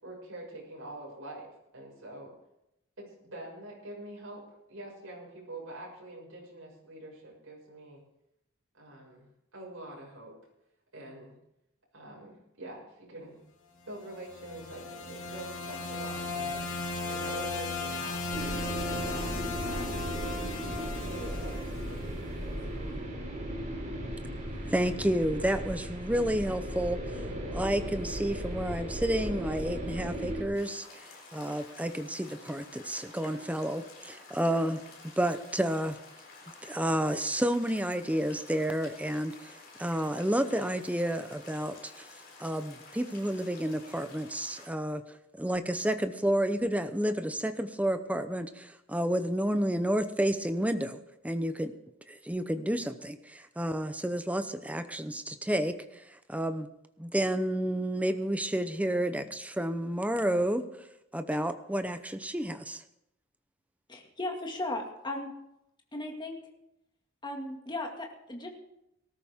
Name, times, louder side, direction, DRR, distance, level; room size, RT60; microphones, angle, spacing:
voice 1, 0.0-2.3 3.0-4.4 4.7-8.0 8.8-10.3 10.9-11.3 11.9-13.4 13.9-18.2 18.8-19.3 19.6-20.1 21.0-21.5 21.8-23.1, right 1 dB, 75° right, -3 dB, 6.2 m, -45 dB
sound 1, 14.1-22.3, left 3 dB, 70° left, 2.2 m, -36 dB
sound 2, 18.3-30.4, equal, 40° right, 3.3 m, -36 dB
voice 2, 24.6-27.0 27.5-31.0 31.3-34.8 35.2-36.0 36.6-39.5 39.8-42.1 42.4-45.0 45.4-51.7 52.1-55.8 56.3-56.7 57.0-60.6 61.1-62.8, right 1 dB, 5° right, 9 dB, 0.8 m, -30 dB
sound 3, 30.5-44.7, left 3 dB, 50° left, 3.9 m, -51 dB
voice 3, 63.9-65.3 65.9-66.4 67.2-68.5, left 2 dB, 25° left, 1 dB, 2.1 m, -36 dB
19.0 x 13.0 x 3.7 m, 0.85 s
head